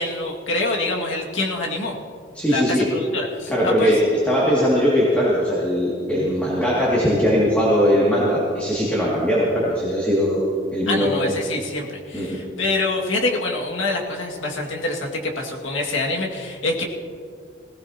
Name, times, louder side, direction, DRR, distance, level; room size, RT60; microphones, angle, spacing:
voice 1, 0.0-1.9 2.5-4.0 10.9-16.8, left 2 dB, 90° left, -1 dB, 2.1 m, -25 dB
voice 2, 2.3-2.9 3.5-4.0 4.3-10.4 10.7-11.3 12.1-12.4, equal, 10° left, -7 dB, 2.3 m, -20 dB
20.0 x 17.0 x 2.9 m, 2.3 s
head